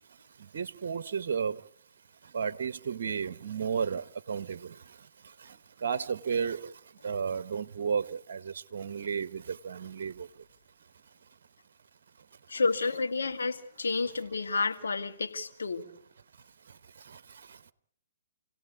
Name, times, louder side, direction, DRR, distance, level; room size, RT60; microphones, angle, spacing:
voice 1, 0.4-1.7 2.2-10.4 16.6-17.7, right 6 dB, 60° right, 1.0 m, -34 dB
voice 2, 12.5-15.9, left 4 dB, 75° left, 2.4 m, -30 dB
28.5 x 17.0 x 8.4 m
figure-of-eight pair, 125°, 0 cm